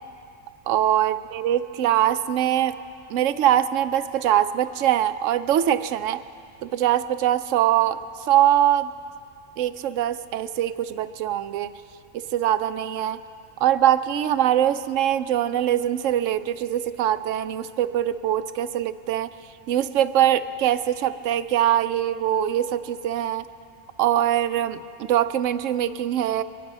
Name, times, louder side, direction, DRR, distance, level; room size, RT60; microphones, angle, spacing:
voice 1, 0.7-2.8 3.1-6.2 6.6-8.9 9.6-11.7 12.1-13.2 13.6-19.3 19.7-23.5 24.0-26.4, right 11 dB, 85° right, 12 dB, 0.9 m, -22 dB
24.0 x 10.5 x 5.4 m, 2.4 s
omnidirectional pair, 1.3 m